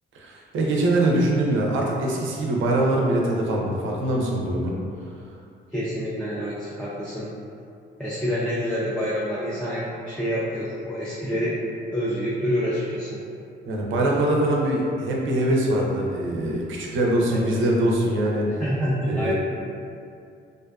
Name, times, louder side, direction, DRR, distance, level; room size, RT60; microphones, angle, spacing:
voice 1, 0.1-4.7 13.7-18.5 19.1-19.3, right 1 dB, 80° right, -2 dB, 0.5 m, -23 dB
voice 2, 5.7-7.3 8.0-11.6 11.9-13.2 17.3-17.5 18.6-19.3, equal, 5° left, -10 dB, 0.4 m, -27 dB
2.5 x 2.3 x 2.2 m, 2.4 s
cardioid pair, 90°, 20 cm